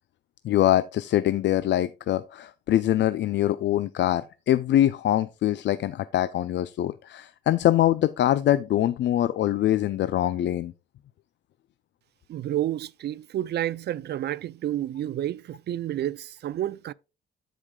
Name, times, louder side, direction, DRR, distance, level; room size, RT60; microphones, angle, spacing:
voice 1, 0.4-10.7, left 12 dB, 65° left, 0.5 m, -23 dB
voice 2, 12.3-16.9, right 12 dB, 55° right, 0.4 m, -30 dB
13.5 x 5.1 x 2.3 m
cardioid pair, 90°, 20 cm